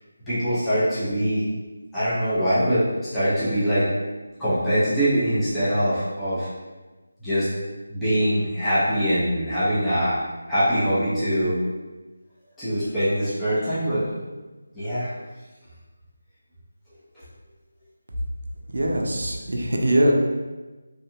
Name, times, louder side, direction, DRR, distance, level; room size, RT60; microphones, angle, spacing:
voice 1, 0.3-1.4 1.9-2.8 3.1-3.9 4.4-6.5 7.2-7.5 7.9-10.2 10.5-11.6 12.6-14.1 14.7-15.1, equal, 5° left, -15 dB, 0.5 m, -23 dB
voice 2, 18.7-20.1, right 1 dB, 60° right, 0 dB, 0.5 m, -22 dB
2.7 x 2.2 x 2.7 m, 1.2 s
figure-of-eight pair, 180°, 0 cm